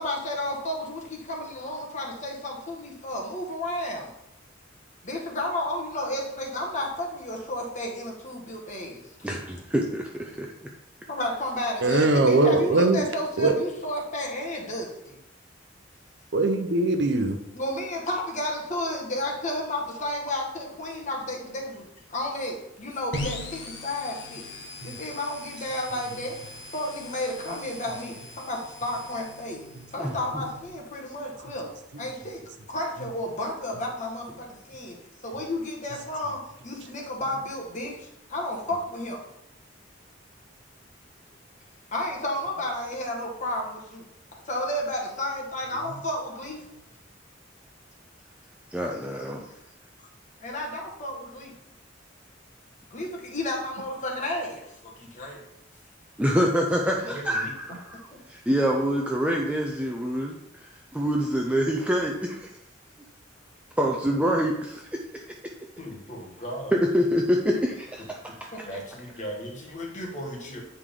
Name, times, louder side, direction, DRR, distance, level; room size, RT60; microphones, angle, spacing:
voice 1, 0.0-4.1 5.0-9.3 11.1-15.2 17.5-24.5 24.8-26.4 26.7-29.6 29.9-31.7 32.0-32.4 32.7-35.0 35.2-39.2 41.9-44.0 44.3-46.6 50.0-50.1 50.4-51.5 52.9-55.4 57.0-57.5 65.8-66.8 68.0-68.1 68.5-70.6, left 1 dB, 40° left, 0 dB, 1.6 m, -32 dB
voice 2, 9.2-10.7 30.0-30.1 48.7-49.4 56.2-62.5 63.8-65.2 66.7-68.7, equal, 5° right, 0 dB, 0.6 m, -26 dB
voice 3, 11.8-13.0 13.4-13.5 16.3-17.4 24.8-24.9, right 2 dB, 60° right, 6 dB, 0.8 m, -21 dB
sound 1, 23.1-30.7, left 2 dB, 65° left, 1.3 m, -40 dB
8.9 x 4.9 x 3.7 m, 0.83 s
head